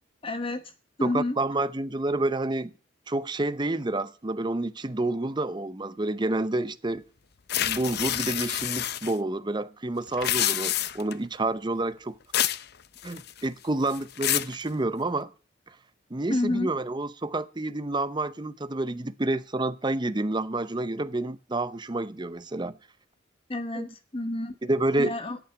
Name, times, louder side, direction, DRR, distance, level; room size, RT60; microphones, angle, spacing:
voice 1, 0.2-0.7 1.0-1.4 16.3-16.7 23.5-24.6 25.0-25.4, left 2 dB, 25° left, 1.0 m, -29 dB
voice 2, 1.0-2.7 3.1-7.0 7.6-12.2 13.0-15.3 15.7-15.8 16.1-22.8 23.8-23.9 24.6-25.1, right 2 dB, 20° right, 0.7 m, -29 dB
sound 1, 7.5-9.1 10.1-11.1 12.3-12.6 13.0-13.5 13.9-14.5, left 12 dB, 55° left, 0.6 m, -27 dB
10.0 x 8.6 x 9.8 m
head